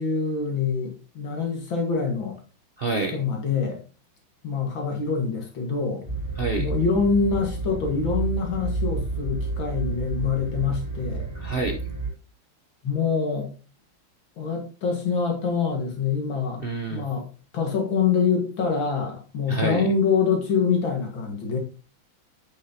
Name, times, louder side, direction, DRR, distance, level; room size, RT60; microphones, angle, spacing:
voice 1, 0.0-2.4 3.1-3.8 4.4-6.0 6.6-11.3 12.8-13.5 14.4-16.6 16.9-17.3 17.5-21.6, left 5 dB, 75° left, 2.4 m, -25 dB
voice 2, 2.8-3.2 6.4-6.7 11.3-11.8 16.6-17.0 19.5-19.9, right 3 dB, 65° right, 0.5 m, -27 dB
sound 1, 6.0-12.1, right 3 dB, 15° right, 3.9 m, -30 dB
9.3 x 6.5 x 2.8 m
omnidirectional pair, 2.2 m